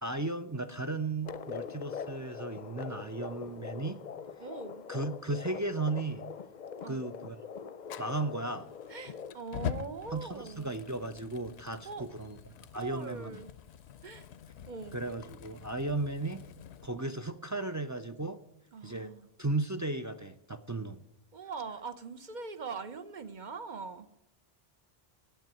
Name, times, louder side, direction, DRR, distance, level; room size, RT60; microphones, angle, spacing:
voice 1, 0.0-4.0 4.9-6.2 6.9-7.4 8.0-8.7 10.1-12.4 12.7-13.4 14.9-16.4 16.8-18.4 18.8-19.1 19.4-21.0, right 2 dB, 30° right, 0.3 m, -35 dB
sound 1, 1.2-9.3, left 7 dB, 50° left, 0.7 m, -43 dB
voice 2, 4.4-4.8 6.8-7.0 8.9-10.7 11.8-12.1 12.7-13.5 14.0-14.3 14.7-15.0 18.7-19.3 21.3-24.2, right 4 dB, 50° right, 0.9 m, -42 dB
Fire, 7.8-16.9, left 8 dB, 90° left, 0.9 m, -45 dB
9.1 x 7.7 x 9.0 m
omnidirectional pair, 1.1 m